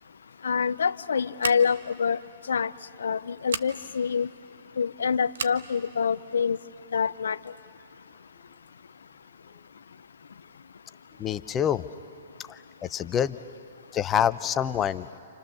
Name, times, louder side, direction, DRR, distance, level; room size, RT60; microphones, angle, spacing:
voice 1, 0.4-2.2 2.5-2.7 3.0-4.3 4.8-6.6 6.9-7.4, left 6 dB, 70° left, 17 dB, 0.5 m, -26 dB
Scissors, 1.4-1.9 3.4-3.7 5.3-5.6, right 6 dB, 70° right, 1.0 m, -33 dB
voice 2, 11.2-11.8 12.5-13.3 13.9-15.2, left 9 dB, 20° left, 13 dB, 0.7 m, -26 dB
29.0 x 28.5 x 6.9 m, 2.6 s
figure-of-eight pair, 120°, 0 cm